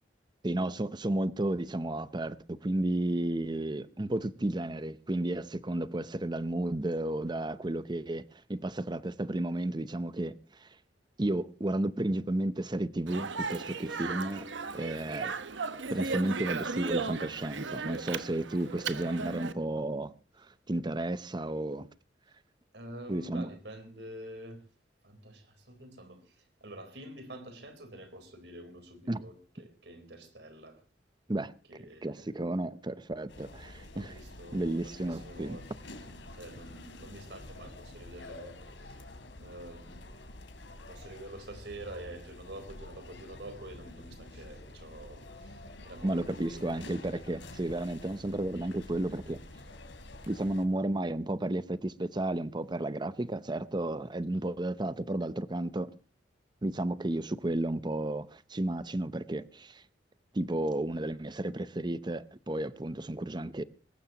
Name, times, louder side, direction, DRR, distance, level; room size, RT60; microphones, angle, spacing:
voice 1, 0.4-10.3 10.6-10.7 11.2-14.5 14.7-15.3 15.9-21.9 23.1-23.5 29.1-29.2 31.3-31.5 32.0-34.1 34.5-35.6 46.0-49.4 50.3-55.9 56.6-59.8 60.3-63.6, right 1 dB, 25° right, 0.7 m, -32 dB
Speech, 13.1-19.5, right 4 dB, 85° right, 1.1 m, -36 dB
voice 2, 15.1-15.4 22.7-24.6 25.0-30.8 31.7-32.4 33.9-35.7 36.3-39.0 39.4-40.1 40.9-46.7, right 1 dB, 65° right, 4.0 m, -47 dB
sound 1, 33.3-50.6, left 2 dB, 90° left, 3.2 m, -48 dB
21.5 x 18.5 x 2.9 m
head